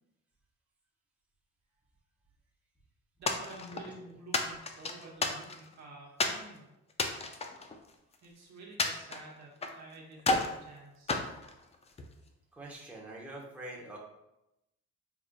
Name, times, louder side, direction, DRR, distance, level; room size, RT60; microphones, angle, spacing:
voice 1, 3.2-6.7 8.2-11.3, right 2 dB, 60° right, -1 dB, 0.9 m, -50 dB
sound 1, 3.3-3.9 4.3-5.7 6.2-6.4 6.9-8.3 8.8-9.8 10.2-10.6 11.1-12.1, left 3 dB, 20° left, 0.3 m, -32 dB
voice 2, 12.5-14.0, right 1 dB, 5° right, -3 dB, 0.7 m, -45 dB
4.7 x 2.4 x 2.2 m, 0.90 s
cardioid pair, 90°, 30 cm